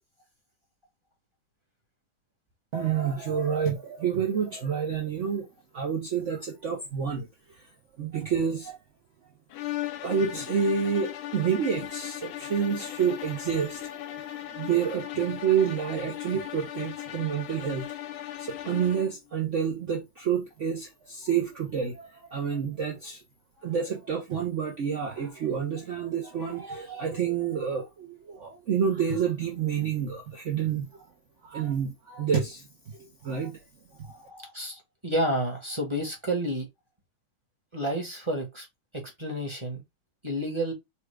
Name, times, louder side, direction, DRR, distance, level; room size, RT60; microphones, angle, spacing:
voice 1, 2.7-5.5 5.7-7.3 8.0-8.8 10.0-17.8 18.4-23.2 23.6-30.9 31.4-33.6, right 7 dB, 85° right, 0.6 m, -29 dB
sound 1, 9.5-19.2, left 13 dB, 85° left, 1.4 m, -37 dB
voice 2, 34.0-36.7 37.7-38.7 38.9-39.8 40.2-40.7, right 1 dB, 20° right, 0.8 m, -30 dB
4.3 x 2.3 x 4.5 m
omnidirectional pair, 2.3 m